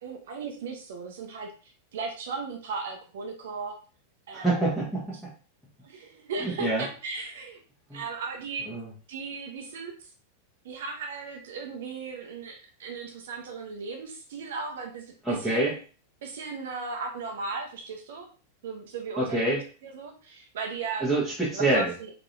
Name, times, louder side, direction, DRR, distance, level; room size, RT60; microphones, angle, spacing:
voice 1, 0.0-3.8 4.3-4.7 5.8-7.6 7.9-8.7 9.1-10.1 10.6-15.8 16.2-18.3 18.6-21.1 21.5-22.1, right 4 dB, 60° right, 4 dB, 0.7 m, -37 dB
voice 2, 4.3-5.3 6.4-6.8 7.9-8.0 8.7-8.9 15.2-15.8 19.2-19.6 21.0-21.9, right 2 dB, ahead, -8 dB, 1.1 m, -26 dB
3.8 x 2.8 x 2.6 m, 0.37 s
figure-of-eight pair, 90°, 0 cm